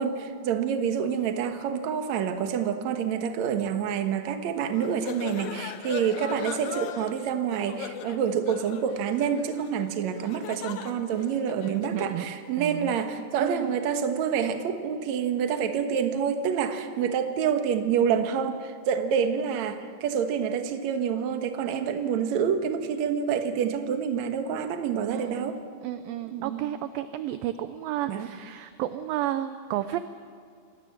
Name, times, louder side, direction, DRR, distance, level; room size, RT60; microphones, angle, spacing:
voice 1, 0.0-25.6 26.2-26.7 28.1-28.3, right 7 dB, 60° right, 7 dB, 2.1 m, -27 dB
sound 1, 4.7-12.2, left 9 dB, 75° left, 1.8 m, -39 dB
voice 2, 11.7-12.3 12.6-13.0 13.4-13.8 25.1-25.5 25.8-30.0, right 12 dB, 80° right, 11 dB, 2.1 m, -32 dB
25.5 x 19.5 x 7.5 m, 2.3 s
omnidirectional pair, 4.8 m